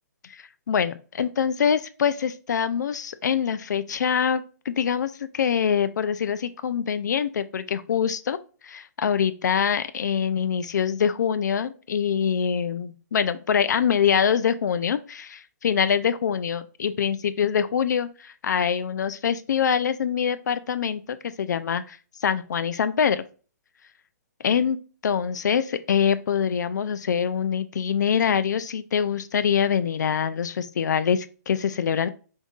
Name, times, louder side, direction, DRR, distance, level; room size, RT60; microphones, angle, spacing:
voice 1, 0.3-8.4 8.6-23.2 24.4-24.8 25.0-32.1, left 7 dB, 75° left, 12 dB, 0.4 m, -24 dB
5.2 x 2.6 x 2.3 m, 0.37 s
hypercardioid pair, 155°, 9 cm